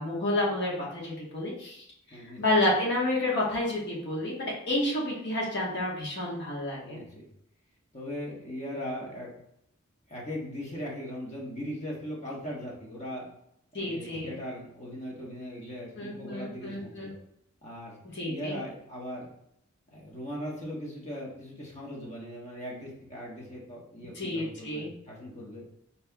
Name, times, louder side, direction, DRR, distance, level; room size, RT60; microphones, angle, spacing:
voice 1, 0.0-7.0 13.7-14.3 16.0-17.1 18.1-18.6 24.2-24.9, left 1 dB, 55° left, -4 dB, 1.2 m, -30 dB
voice 2, 2.1-2.4 6.8-7.3 7.9-9.4 10.1-13.3 13.7-17.2 17.6-18.0 18.2-19.3 19.9-25.6, equal, 30° left, -3 dB, 1.1 m, -39 dB
4.2 x 4.1 x 2.2 m, 0.74 s
head